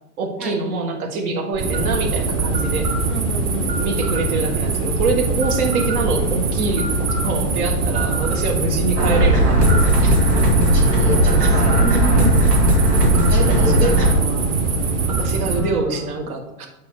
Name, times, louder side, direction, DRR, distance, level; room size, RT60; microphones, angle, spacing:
voice 1, 0.2-2.9 3.8-6.9 7.2-10.4 13.1-14.4 15.1-16.7, right 3 dB, 65° right, 4 dB, 1.6 m, -25 dB
sound 1, 1.5-15.6, right 3 dB, 35° right, 1.2 m, -22 dB
voice 2, 3.1-3.7 11.4-12.3 15.4-16.0, equal, ahead, 0 dB, 0.4 m, -29 dB
sound 2, 9.0-14.1, right 1 dB, 85° right, 2.4 m, -16 dB
6.9 x 4.5 x 4.7 m, 0.97 s
hypercardioid pair, 110°, 47 cm